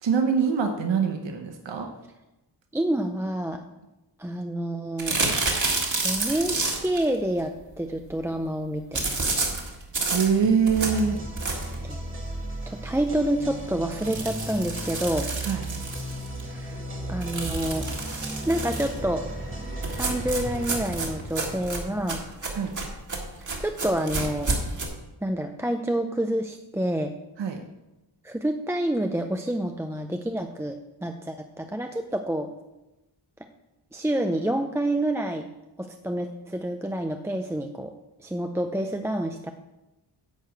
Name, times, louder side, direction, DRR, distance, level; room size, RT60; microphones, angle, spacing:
voice 1, 0.0-1.9 10.1-11.2 15.4-15.7 22.5-22.7 27.4-27.6, right 6 dB, 90° right, 4 dB, 1.0 m, -24 dB
voice 2, 2.7-3.6 4.2-5.2 6.0-9.3 11.8-12.0 12.7-15.3 16.4-16.8 17.1-17.9 18.4-19.2 19.9-22.2 23.4-24.6 25.2-27.1 28.2-32.5 33.9-35.5 35.8-37.9 38.2-39.5, right 1 dB, 5° right, 4 dB, 0.4 m, -28 dB
sound 1, 5.0-7.0 8.9-11.8 12.3-12.4 12.7-12.8 13.1-13.2 13.9-16.4 17.2-19.0 19.8-24.8, right 3 dB, 45° right, 1.9 m, -30 dB
sound 2, 10.7-22.4, right 1 dB, 30° right, 1.7 m, -35 dB
10.5 x 4.9 x 7.7 m, 0.99 s
wide cardioid pair, 140°, 43 cm